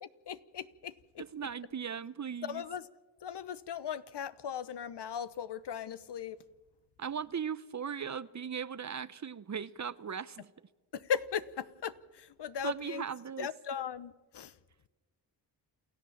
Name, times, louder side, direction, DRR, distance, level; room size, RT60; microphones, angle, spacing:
voice 1, 0.3-1.5 2.5-2.9 3.2-6.4 10.9-13.0 13.4-14.5, left 7 dB, 65° left, 1.0 m, -38 dB
voice 2, 1.2-2.6 7.0-10.5 12.6-13.5, right 7 dB, 40° right, 0.8 m, -38 dB
28.5 x 14.0 x 7.3 m
cardioid pair, 55°, 44 cm